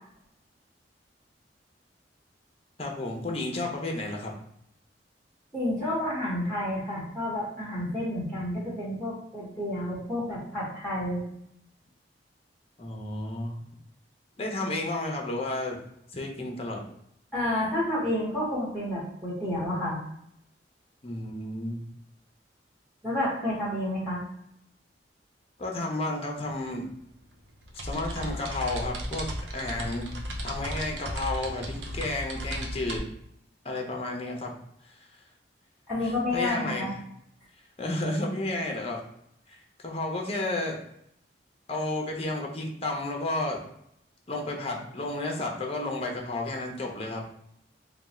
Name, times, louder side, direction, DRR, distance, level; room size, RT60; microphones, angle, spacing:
voice 1, 2.8-4.3 12.8-13.6 14.4-15.8 16.1-16.8 21.0-21.8 25.6-26.8 27.8-30.1 30.4-33.0 33.6-34.5 34.8-34.9 36.0-37.0 37.8-39.0 39.5-40.8 41.7-43.6 44.3-47.2, left 2 dB, 35° left, 1 dB, 0.7 m, -32 dB
voice 2, 5.5-11.2 17.3-20.0 23.0-24.2 35.9-36.9, left 1 dB, ahead, -11 dB, 1.2 m, -30 dB
sound 1, 26.8-33.0, equal, 85° right, 0.7 m, -35 dB
3.4 x 2.3 x 4.1 m, 0.74 s
head